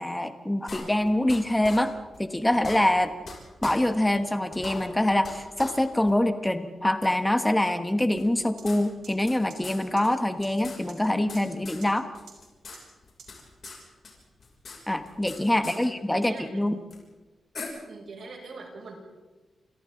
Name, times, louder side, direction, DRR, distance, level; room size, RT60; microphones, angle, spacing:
voice 1, 0.0-1.9 2.2-3.1 3.6-12.1 14.9-16.8, left 1 dB, 10° left, 8 dB, 1.3 m, -25 dB
sound 1, 0.7-1.4 1.6-1.8 2.1-2.2 2.5-3.3 3.6-3.7 4.1-4.2 4.5-5.3 5.6-5.7 6.1-6.2 7.0-7.1 8.2-9.4 9.6-9.8 10.0-10.1 10.4-11.4 11.6-11.8 12.1-12.8 13.0-13.8 14.0-15.4 15.6-15.8 16.9-17.0 17.5-17.6, left 4 dB, 45° left, 6.4 m, -40 dB
sound 2, 8.6-8.7 9.0-9.1 9.5-9.6 10.0-10.1 10.4-10.5 10.9-11.0 11.3-11.4 11.8-11.9 12.3-12.4 12.7-12.8 13.2-13.3 13.6-13.7, right 7 dB, 85° right, 6.0 m, -46 dB
voice 2, 15.6-16.5 17.9-18.9, right 3 dB, 60° right, 0 dB, 6.8 m, -43 dB
29.5 x 27.0 x 3.9 m, 1.2 s
wide cardioid pair, 160°, 0 cm